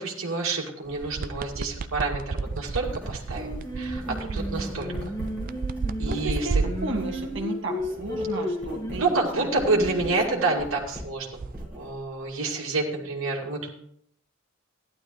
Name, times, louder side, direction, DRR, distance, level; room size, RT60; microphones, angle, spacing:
voice 1, 0.0-3.5 3.8-5.1 6.0-6.6 9.0-11.3 11.7-13.8, right 3 dB, 85° right, -2 dB, 2.3 m, -28 dB
sound 1, 0.9-7.5 11.3-11.7, right 4 dB, 45° right, 0.4 m, -32 dB
Writing, 2.4-7.4 7.6-12.3, equal, 5° right, 5.4 m, -41 dB
Singing, 3.4-10.7, left 1 dB, 20° left, 1.8 m, -34 dB
voice 2, 6.0-9.8, right 1 dB, 65° right, 0 dB, 2.0 m, -34 dB
14.5 x 11.5 x 3.2 m, 0.68 s
head